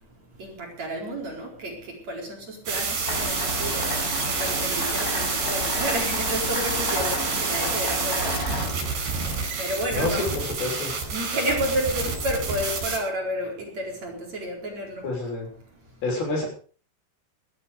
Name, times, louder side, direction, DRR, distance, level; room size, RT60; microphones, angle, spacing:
voice 1, 0.4-10.4 10.9-15.2 15.6-15.7, equal, 40° right, 5.5 m, -31 dB
sound 1, 2.7-13.0, right 4 dB, 65° right, 6.9 m, -28 dB
sound 2, 3.1-8.6, left 1 dB, 20° left, 6.8 m, -31 dB
voice 2, 9.9-10.9 15.0-15.5 16.0-16.5, left 2 dB, 60° left, 8.1 m, -28 dB
20.0 x 13.0 x 5.1 m
omnidirectional pair, 5.1 m